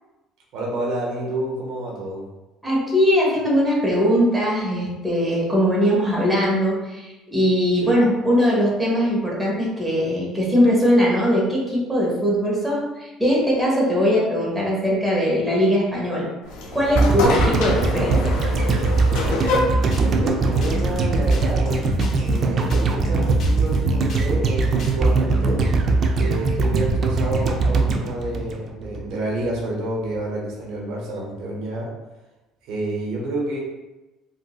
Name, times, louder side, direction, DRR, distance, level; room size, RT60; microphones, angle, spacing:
voice 1, 0.5-2.2 7.8-8.0 17.8-18.2 19.8-21.8 22.2-25.6 26.2-31.9 32.6-33.6, right 1 dB, 70° right, -2 dB, 0.7 m, -29 dB
voice 2, 2.6-16.3 16.7-18.2, equal, 10° right, -5 dB, 1.2 m, -20 dB
sound 1, 16.4-21.7, left 2 dB, 85° left, 0.6 m, -27 dB
sound 2, 16.9-29.2 29.4-29.5, right 3 dB, 45° right, 0.4 m, -21 dB
sound 3, 19.6-24.3 24.6-25.1, left 3 dB, 50° left, 0.7 m, -39 dB
3.7 x 2.6 x 2.3 m, 1.1 s
cardioid pair, 100°, 0 cm